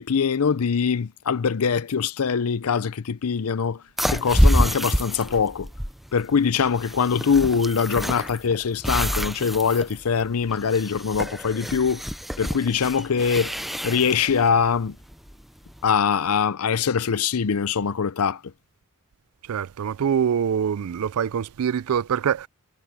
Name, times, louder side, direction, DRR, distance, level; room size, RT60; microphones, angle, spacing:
voice 1, 0.0-3.8 4.1-5.7 6.1-12.0 12.4-13.5 13.8-15.0 15.8-18.4, left 6 dB, 75° left, 0.6 m, -23 dB
sound 1, 4.0-15.9, equal, ahead, 0.5 m, -27 dB
voice 2, 19.4-22.5, right 8 dB, 75° right, 0.4 m, -24 dB
head